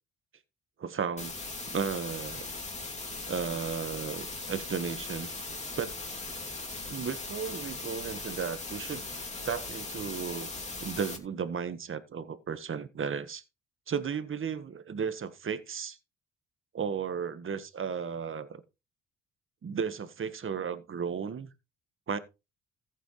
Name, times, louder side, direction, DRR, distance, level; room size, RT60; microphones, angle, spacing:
voice 1, 0.8-1.3 1.7-2.4 3.3-5.3 5.8-5.9 6.9-9.1 9.4-10.5 10.8-13.4 13.9-16.0 16.7-18.6 19.6-21.5 22.1-22.2, right 6 dB, 45° right, 1.5 m, -34 dB
sound 1, 1.2-11.2, left 3 dB, 20° left, 2.8 m, -39 dB
14.5 x 8.3 x 3.2 m
cardioid pair, 90°, 30 cm